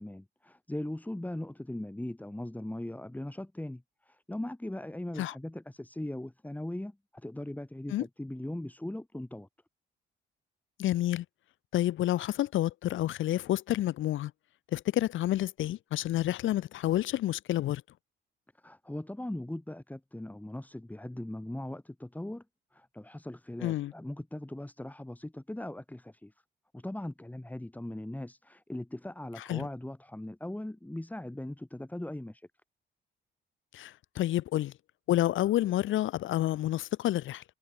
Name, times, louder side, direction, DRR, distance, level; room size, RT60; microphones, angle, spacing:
voice 1, 0.0-9.5 18.6-22.4 22.7-26.3 26.7-32.5, left 1 dB, 10° left, 7.2 m, -39 dB
voice 2, 10.8-11.2 11.7-14.3 14.7-17.8 23.6-23.9 29.5-29.7 33.7-34.7 35.1-37.4, left 14 dB, 80° left, 1.3 m, -29 dB
cardioid pair, 90°, 20 cm